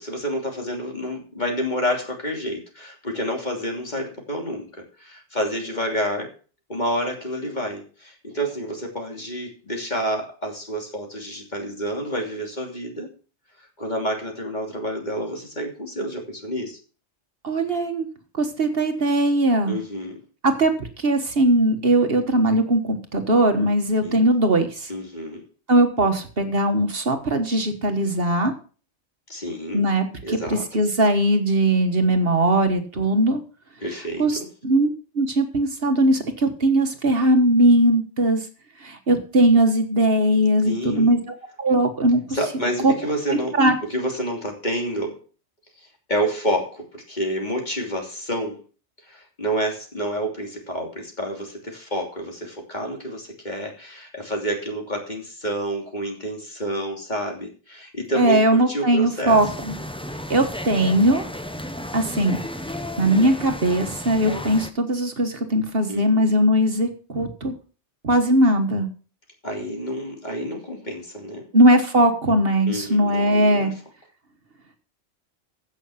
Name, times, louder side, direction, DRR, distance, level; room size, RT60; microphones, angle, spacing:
voice 1, 0.0-6.3 6.7-13.1 13.8-16.8 19.7-20.2 24.0-24.3 24.9-25.4 29.3-29.8 30.2-30.7 33.8-34.2 40.6-41.1 42.3-43.6 43.9-45.2 46.1-48.6 49.1-59.4 65.9-66.4 69.4-71.5 72.6-73.7, equal, 40° left, 1 dB, 3.1 m, -29 dB
voice 2, 17.4-18.0 18.4-19.8 20.4-24.9 25.7-28.5 29.7-33.4 34.2-34.9 35.1-38.5 38.8-41.2 41.6-42.2 42.8-42.9 43.3-43.7 58.2-59.7 60.3-61.2 61.9-62.4 63.0-67.5 68.0-68.9 71.5-73.7, right 1 dB, 55° right, 6 dB, 1.7 m, -19 dB
sound 1, 59.3-64.7, left 1 dB, 5° left, 0.7 m, -33 dB
15.5 x 6.5 x 5.8 m, 0.38 s
omnidirectional pair, 1.2 m